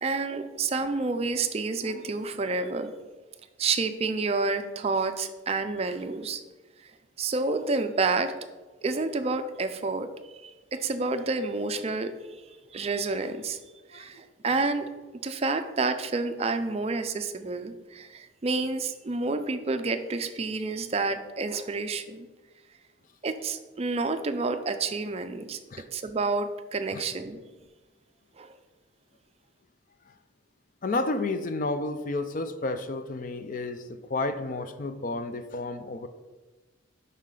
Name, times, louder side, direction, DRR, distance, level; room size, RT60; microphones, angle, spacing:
voice 1, 0.0-3.0 3.6-6.4 7.2-8.3 8.8-12.1 12.7-13.6 13.9-14.9 15.2-22.3 23.2-25.6 25.9-27.4 28.4-28.5, right 3 dB, 30° right, 9 dB, 0.4 m, -29 dB
voice 2, 30.8-36.1, left 2 dB, 40° left, 9 dB, 0.4 m, -31 dB
7.4 x 5.6 x 3.8 m, 1.2 s
head